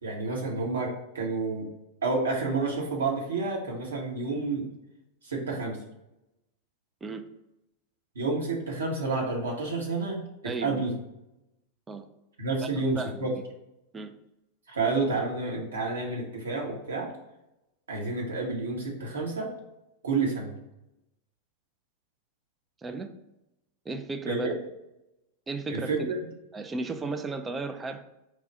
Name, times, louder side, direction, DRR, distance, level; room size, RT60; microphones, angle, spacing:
voice 1, 0.0-1.7 2.0-4.7 5.2-5.8 8.1-10.2 10.6-10.9 12.4-13.3 14.7-17.1 17.9-19.5 20.0-20.5 24.3-24.6 25.7-26.2, right 3 dB, 70° right, -1 dB, 1.2 m, -29 dB
voice 2, 10.4-10.8 11.9-12.1 13.0-13.3 13.9-14.2 22.8-23.1 23.9-24.5 25.5-26.1 26.5-28.0, right 3 dB, 15° right, 7 dB, 0.4 m, -34 dB
4.7 x 2.4 x 4.5 m, 0.90 s
figure-of-eight pair, 90°, 0 cm